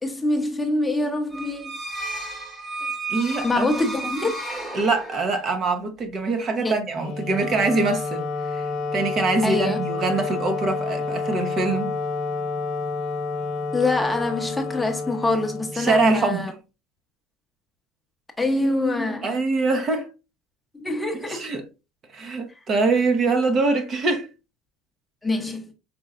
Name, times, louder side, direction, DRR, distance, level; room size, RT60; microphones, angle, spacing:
voice 1, 0.0-1.7 3.4-4.3 6.6-6.7 9.4-9.8 13.7-16.5 18.4-19.3 20.7-21.5 25.2-25.7, left 2 dB, 10° left, 0.8 m, -25 dB
sound 1, 1.3-5.5, right 2 dB, 15° right, 1.3 m, -33 dB
voice 2, 3.1-3.7 4.7-12.0 15.7-16.5 19.2-20.1 21.1-21.6 22.1-24.3, right 3 dB, 40° right, 0.9 m, -24 dB
Wind instrument woodwind instrument, 6.9-16.2, left 4 dB, 50° left, 1.1 m, -29 dB
5.2 x 3.2 x 2.5 m
supercardioid pair, 115°, 0 cm